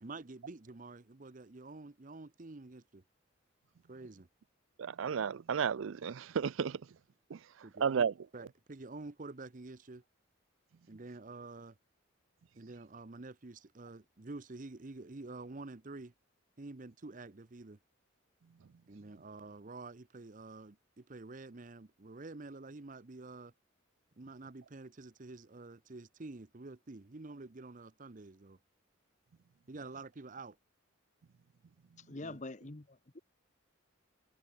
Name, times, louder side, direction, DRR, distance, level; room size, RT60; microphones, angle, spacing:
voice 1, 0.0-3.0 3.9-4.3 7.6-8.0 8.3-10.0 10.9-11.7 12.6-16.1 16.6-17.8 18.9-23.5 24.2-28.6 29.7-30.5 32.2-32.4, right 3 dB, 40° right, 0.8 m, -48 dB
voice 2, 4.8-6.8 7.3-7.4 7.8-8.1, right 7 dB, 70° right, 0.4 m, -32 dB
voice 3, 32.1-33.2, left 2 dB, 35° left, 1.0 m, -45 dB
head